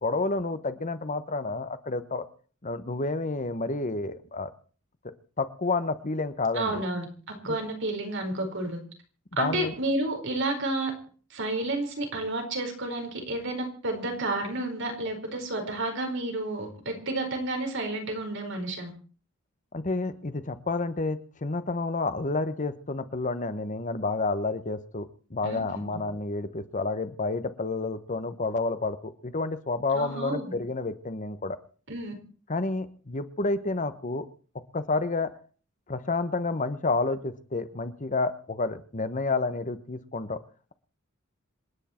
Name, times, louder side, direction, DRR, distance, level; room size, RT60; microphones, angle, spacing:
voice 1, 0.0-2.2 2.6-4.5 5.0-6.8 9.4-9.7 19.7-31.6 32.5-34.3 34.7-35.3 35.9-40.4, left 3 dB, 40° left, 11 dB, 1.1 m, -30 dB
voice 2, 6.5-7.1 7.4-8.8 9.4-10.9 11.3-18.9 25.4-25.6 25.9-26.0 29.9-30.5 31.9-32.1, right 2 dB, 65° right, 4 dB, 4.6 m, -31 dB
27.0 x 10.0 x 4.4 m, 0.41 s
head